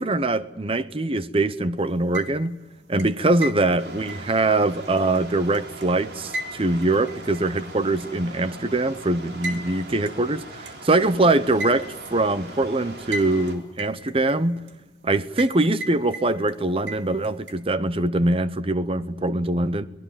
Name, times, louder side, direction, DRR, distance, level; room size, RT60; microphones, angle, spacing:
voice 1, 0.0-2.6 2.9-14.6 15.0-19.9, right 2 dB, 30° right, 0.8 m, -23 dB
sound 1, 1.9-2.6 3.0-5.9 6.3-7.6 8.0-8.1 9.4-9.6 10.1-10.2 10.7-10.8 11.6-12.1 13.1-13.5 13.8-14.7 15.4-15.6 15.8-16.5 16.9-17.6, right 1 dB, 85° right, 2.5 m, -34 dB
sound 2, 3.8-13.6, right 1 dB, 60° right, 4.0 m, -41 dB
23.5 x 19.0 x 9.0 m
head